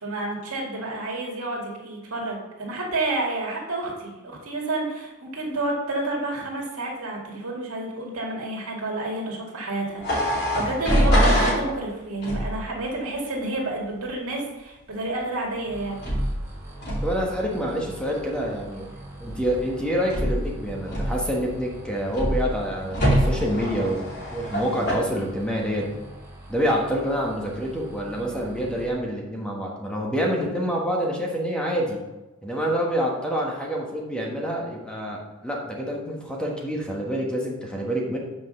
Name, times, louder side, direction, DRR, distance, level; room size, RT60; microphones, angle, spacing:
voice 1, 0.0-16.0, right 2 dB, 90° right, -1 dB, 2.0 m, -30 dB
sound 1, 10.0-11.6 12.2-12.6 16.0-16.4 16.8-17.2 19.2-19.6 20.1-20.5 20.9-21.4 22.1-22.5 22.9-24.9, equal, 50° left, 2.9 m, -23 dB
sound 2, 15.6-28.9, right 1 dB, 15° right, 2.2 m, -43 dB
voice 2, 17.0-18.9 19.2-25.9 26.5-32.0 32.4-38.2, equal, 5° left, -2 dB, 1.2 m, -27 dB
6.1 x 5.1 x 6.5 m, 1.0 s
head